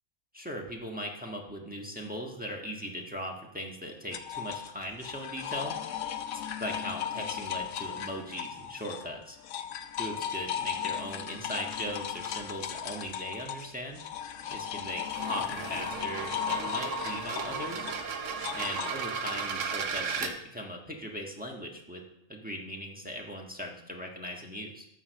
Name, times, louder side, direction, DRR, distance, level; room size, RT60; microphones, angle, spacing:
voice 1, 0.3-5.7 6.6-9.4 10.0-14.0 14.5-17.9 18.5-22.0 22.3-24.9, equal, 5° right, -1 dB, 1.4 m, -39 dB
sound 1, 4.1-9.1 9.4-18.9, left 9 dB, 80° left, 1.1 m, -36 dB
sound 2, 15.0-20.3, right 5 dB, 80° right, 1.3 m, -35 dB
12.5 x 5.0 x 6.8 m, 0.83 s
omnidirectional pair, 1.3 m